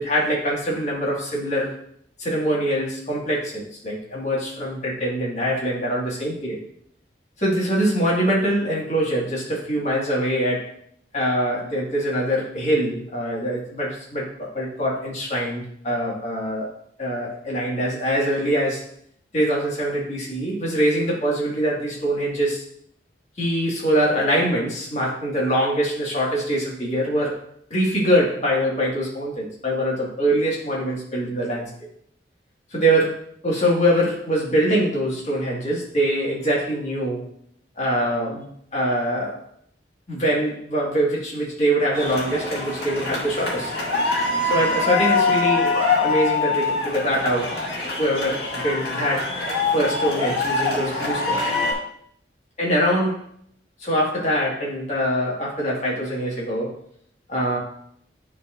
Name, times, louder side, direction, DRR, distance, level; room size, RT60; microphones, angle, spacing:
voice 1, 0.0-1.7 2.2-6.6 7.4-10.8 11.1-16.7 17.0-18.8 19.3-22.6 23.4-27.4 27.7-31.7 32.7-37.2 37.8-39.4 40.1-43.7 44.5-45.8 46.0-47.6 48.0-49.3 49.7-51.5 52.6-53.3 53.8-56.7 57.3-57.6, equal, 40° left, -4 dB, 1.8 m, -23 dB
sound 1, 41.9-51.7, left 3 dB, 60° left, 2.0 m, -24 dB
10.5 x 4.2 x 2.5 m, 0.68 s
head